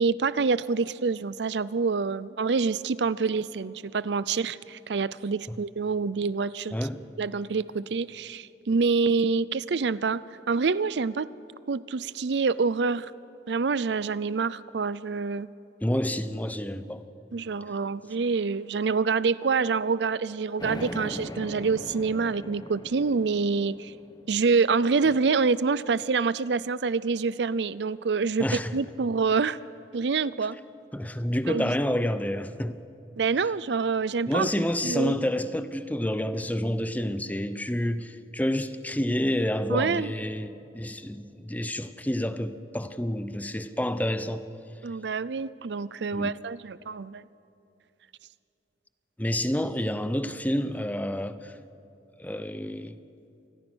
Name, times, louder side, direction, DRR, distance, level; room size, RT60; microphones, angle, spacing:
voice 1, 0.0-6.8 7.2-10.2 10.5-11.3 11.7-13.1 13.5-15.5 17.3-23.9 24.3-28.5 28.7-29.6 29.9-30.6 31.5-31.8 33.2-34.5 34.8-35.2 39.7-40.1 44.8-47.2, right 4 dB, 75° right, 18 dB, 0.5 m, -26 dB
voice 2, 15.8-17.0 28.4-28.7 30.9-32.8 34.3-44.4 46.1-46.3 49.2-51.5 52.2-53.0, left 1 dB, 10° left, 12 dB, 0.8 m, -29 dB
sound 1, 20.6-24.5, left 1 dB, 25° left, 1.3 m, -39 dB
27.0 x 20.5 x 6.3 m, 2.7 s
head